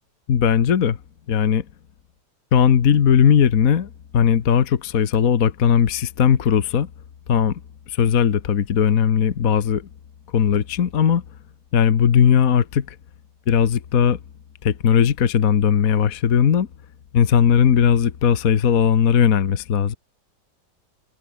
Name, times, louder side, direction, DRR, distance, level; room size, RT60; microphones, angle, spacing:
voice 1, 0.3-1.0 1.3-1.6 2.5-6.9 7.3-7.6 7.9-9.8 10.3-11.2 11.7-13.0 13.5-14.2 14.6-16.7 17.1-19.9, left 8 dB, 55° left, 1.6 m, -18 dB
omnidirectional pair, 1.8 m